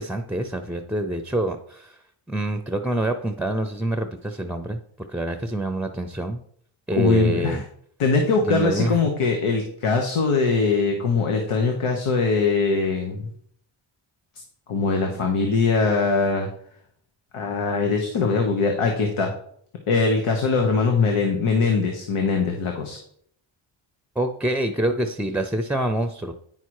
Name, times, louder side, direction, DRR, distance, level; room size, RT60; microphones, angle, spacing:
voice 1, 0.0-2.0 2.3-6.4 6.9-7.6 8.4-9.0 24.2-26.3, right 1 dB, 5° right, 7 dB, 0.5 m, -26 dB
voice 2, 7.0-7.6 8.0-13.3 14.7-16.5 17.3-19.3 19.9-23.0, left 4 dB, 90° left, 3 dB, 1.2 m, -22 dB
9.2 x 5.7 x 4.8 m, 0.66 s
cardioid pair, 85°, 49 cm